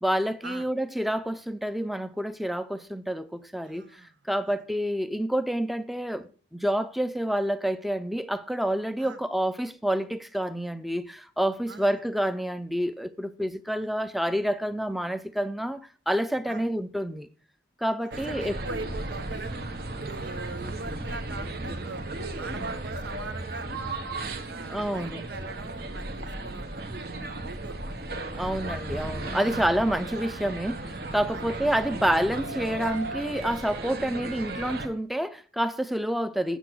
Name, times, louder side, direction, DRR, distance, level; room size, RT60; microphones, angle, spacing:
voice 1, 0.0-4.0 4.3-17.3 17.8-18.6 24.7-25.2 28.3-36.6, right 1 dB, ahead, 0.5 m, -28 dB
voice 2, 3.6-4.2 9.0-9.2 11.7-12.0 16.5-16.7 18.0-19.5 20.0-22.0 22.4-23.7 24.5-28.0 28.3-28.5 29.4-29.6 31.3-31.7, right 3 dB, 85° right, 1.0 m, -41 dB
sound 1, 18.1-34.9, right 2 dB, 60° right, 1.2 m, -35 dB
8.1 x 7.7 x 6.1 m
head